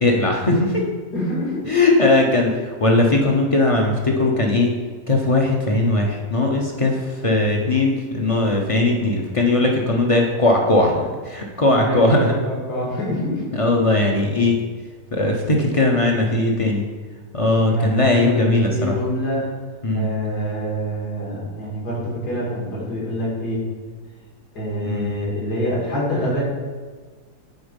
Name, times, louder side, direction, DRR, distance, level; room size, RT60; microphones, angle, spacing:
voice 1, 0.0-0.9 1.7-4.7 5.1-12.3 13.5-14.6 15.1-16.8 17.3-19.0 19.8-20.1 24.9-25.1, left 2 dB, 60° left, 1 dB, 0.3 m, -19 dB
voice 2, 1.1-1.8 11.8-13.4 17.7-19.5 19.9-23.6 24.5-26.4, equal, 80° left, -5 dB, 2.6 m, -26 dB
8.3 x 3.9 x 5.2 m, 1.5 s
omnidirectional pair, 1.7 m